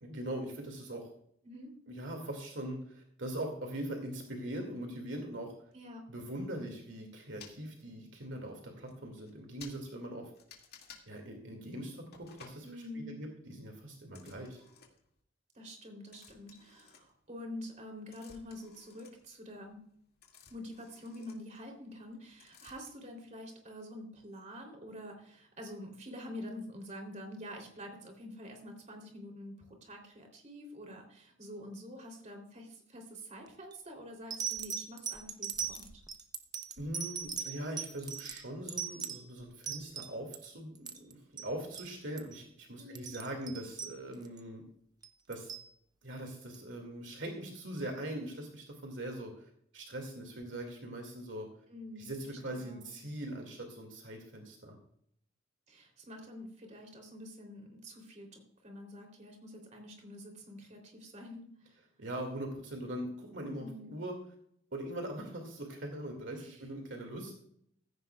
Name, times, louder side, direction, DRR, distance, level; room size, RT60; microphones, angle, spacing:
voice 1, 0.0-1.1 1.9-5.5 6.1-10.3 11.1-12.7 12.9-14.6 36.8-44.6 45.3-45.5 46.0-51.5 52.0-54.8 62.0-64.2 64.7-67.3, right 1 dB, 65° right, 2 dB, 2.4 m, -41 dB
voice 2, 1.4-1.8 5.7-6.1 12.6-13.2 15.5-19.8 20.5-36.0 42.8-43.2 51.7-52.1 52.5-52.9 55.7-61.8 63.6-63.9 66.3-66.6, left 1 dB, 35° right, 2 dB, 3.4 m, -47 dB
sound 1, 7.4-7.6 8.4-8.5 8.9-9.0 9.2-9.3 9.6-9.8 10.3-11.0 12.1-12.6 14.1-15.1 16.1-17.5 17.8-22.1 22.4-22.9, left 6 dB, 50° left, 2.3 m, -56 dB
sound 2, 33.5-33.7 34.3-40.5 40.7-41.5 41.7-41.9 42.2-42.4 42.8-44.4 45.0-45.7 46.5-46.6, right 7 dB, 20° right, 0.8 m, -39 dB
15.5 x 15.0 x 2.4 m, 0.68 s
head